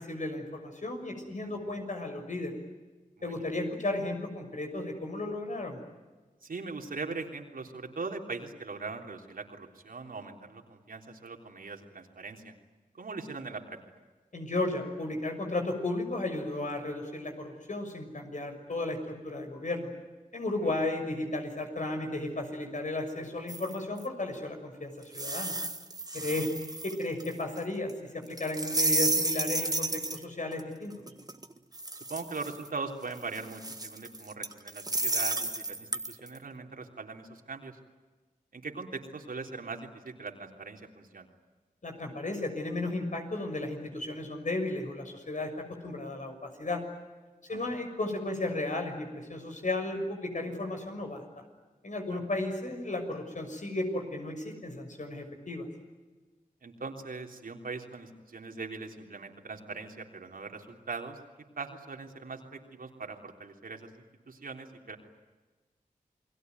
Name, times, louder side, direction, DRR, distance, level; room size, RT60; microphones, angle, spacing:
voice 1, 0.0-2.5 3.2-5.8 14.3-19.9 20.3-25.5 26.1-26.5 26.8-30.9 41.8-45.5 45.8-46.8 47.5-51.4 51.8-55.7, left 2 dB, 60° left, 5 dB, 6.4 m, -34 dB
voice 2, 3.2-3.5 6.4-12.5 13.0-13.8 20.6-20.7 26.1-26.3 32.1-37.8 38.5-41.3 47.5-47.8 52.1-52.2 56.6-61.2 61.6-65.0, right 4 dB, 80° right, 3 dB, 3.5 m, -41 dB
sound 1, 23.5-24.0 25.1-27.6 27.9-28.0 28.4-30.2 30.5-30.6 30.9-32.7 33.2-36.3, right 2 dB, 25° right, 1.6 m, -32 dB
29.0 x 21.0 x 9.5 m, 1.3 s
wide cardioid pair, 65°, 14 cm